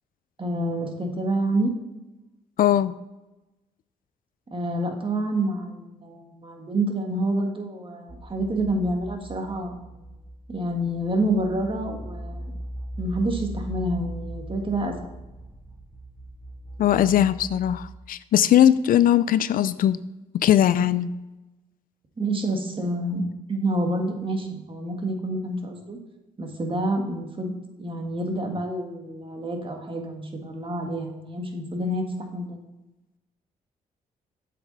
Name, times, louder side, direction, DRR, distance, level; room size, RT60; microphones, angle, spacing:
voice 1, 0.4-1.7 4.5-9.8 10.5-12.5 13.0-15.0 22.2-23.2 23.5-26.0 26.4-32.0 32.3-32.6, right 1 dB, 35° right, 3 dB, 1.7 m, -28 dB
voice 2, 2.6-2.9 16.8-20.0 20.3-21.1, left 11 dB, 65° left, 15 dB, 0.4 m, -20 dB
sound 1, 8.1-17.8, right 1 dB, 5° right, 1.0 m, -39 dB
7.9 x 6.0 x 4.1 m, 1.0 s
supercardioid pair, 60°, 16 cm